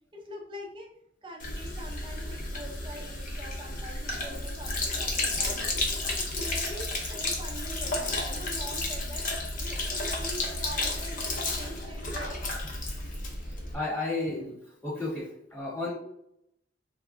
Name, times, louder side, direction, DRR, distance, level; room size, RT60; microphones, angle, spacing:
voice 1, 0.1-0.9 1.2-12.4, right 1 dB, 25° right, 1 dB, 0.5 m, -44 dB
Sink (filling or washing), 1.4-13.7, left 2 dB, 45° left, 0.6 m, -32 dB
voice 2, 13.4-14.5 14.8-15.9, left 2 dB, 10° left, -5 dB, 1.2 m, -33 dB
3.3 x 2.1 x 2.5 m, 0.76 s
head